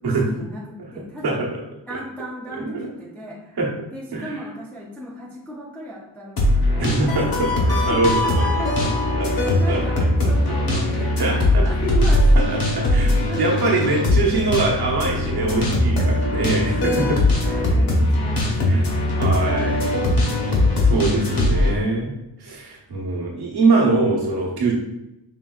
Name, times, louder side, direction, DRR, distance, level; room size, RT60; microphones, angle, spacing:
voice 1, 0.0-1.4 1.9-3.6 3.9-7.0 7.7-8.7 9.2-12.6 13.0-13.8 16.7-18.9 19.4-20.1 21.0-21.4 23.4-23.6, equal, 5° left, -4 dB, 0.4 m, -35 dB
sound 1, 6.4-21.7, left 1 dB, 45° left, 1.1 m, -20 dB
voice 2, 6.8-8.4 8.8-8.9 9.2-10.3 11.2-11.6 12.3-12.4 12.7-17.2 18.7-18.8 19.2-19.8 20.5-22.1 22.4-24.7, right 3 dB, 50° right, -3 dB, 1.1 m, -23 dB
5.6 x 3.3 x 2.3 m, 0.89 s
wide cardioid pair, 180°, 49 cm